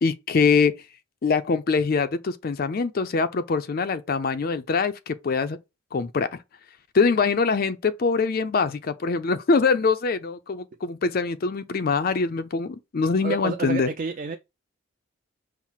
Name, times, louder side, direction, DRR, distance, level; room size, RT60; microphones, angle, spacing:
voice 1, 0.0-0.7 1.2-5.6 5.9-6.4 6.9-13.9, left 4 dB, 45° left, 0.4 m, -23 dB
voice 2, 13.2-14.4, right 4 dB, 40° right, 0.3 m, -29 dB
5.6 x 2.0 x 4.5 m
head